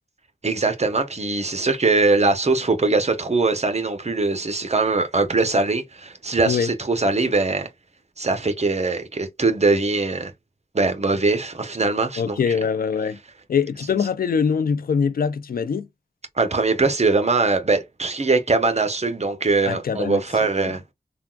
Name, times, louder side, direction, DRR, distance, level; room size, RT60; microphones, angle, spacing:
voice 1, 0.4-7.7 8.2-10.3 10.7-12.4 16.4-20.8, right 3 dB, 45° right, 0.8 m, -21 dB
voice 2, 12.2-13.2 13.5-15.9 19.7-20.2 20.6-20.7, left 6 dB, 75° left, 0.4 m, -23 dB
3.5 x 2.3 x 2.3 m
cardioid pair, 45°, 15 cm